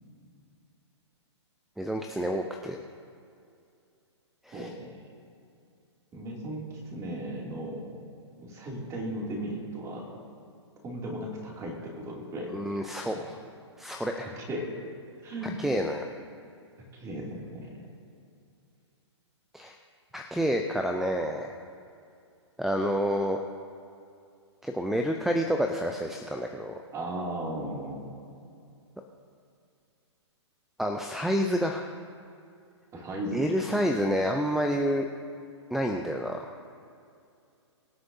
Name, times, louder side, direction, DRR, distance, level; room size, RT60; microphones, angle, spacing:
voice 1, 1.8-2.8 4.4-4.7 12.5-13.4 13.8-14.3 15.6-16.0 19.5-19.7 20.1-21.5 22.6-23.4 24.6-26.8 30.8-31.9 33.3-35.1 35.7-36.6, equal, ahead, 4 dB, 0.4 m, -28 dB
voice 2, 4.5-4.9 6.1-7.9 8.4-10.2 10.8-12.6 13.1-13.3 14.4-14.7 15.2-15.6 16.9-17.7 26.9-28.1 32.9-33.5, right 1 dB, 20° right, -2 dB, 2.6 m, -36 dB
23.5 x 7.8 x 2.7 m, 2.5 s
hypercardioid pair, 130°, 15 cm